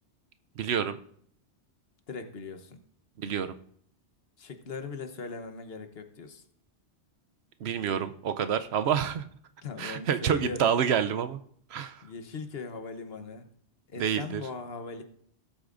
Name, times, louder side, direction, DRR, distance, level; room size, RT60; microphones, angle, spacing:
voice 1, 0.6-1.0 3.2-3.6 7.6-9.3 9.8-11.4 11.7-12.0 14.0-14.4, right 8 dB, 70° right, 10 dB, 0.8 m, -28 dB
voice 2, 2.1-2.8 4.4-6.4 9.6-10.8 12.0-13.5 13.9-15.0, left 4 dB, 60° left, 8 dB, 1.2 m, -39 dB
18.0 x 8.2 x 2.5 m, 0.63 s
omnidirectional pair, 1.2 m